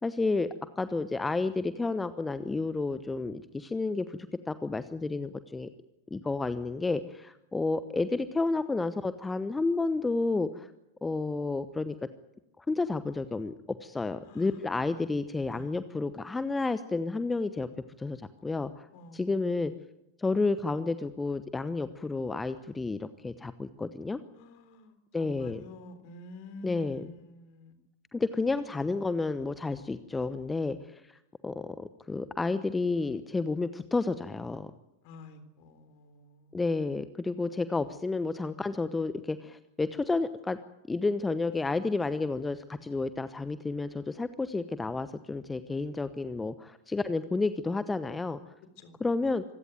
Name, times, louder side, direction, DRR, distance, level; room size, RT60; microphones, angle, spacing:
voice 1, 0.0-0.5 0.8-4.2 4.5-5.7 6.1-10.7 11.0-12.0 12.6-13.5 13.8-17.7 18.0-18.9 19.1-19.7 20.2-24.2 25.1-25.6 26.6-27.1 28.1-31.2 31.4-34.7 36.5-40.6 40.9-48.5 49.0-49.4, left 3 dB, 10° left, 13 dB, 0.9 m, -31 dB
voice 2, 24.3-27.7 35.0-36.5 48.8-49.0, left 1 dB, 45° left, 10 dB, 3.7 m, -49 dB
26.0 x 16.5 x 9.2 m, 0.92 s
figure-of-eight pair, 90°, 0 cm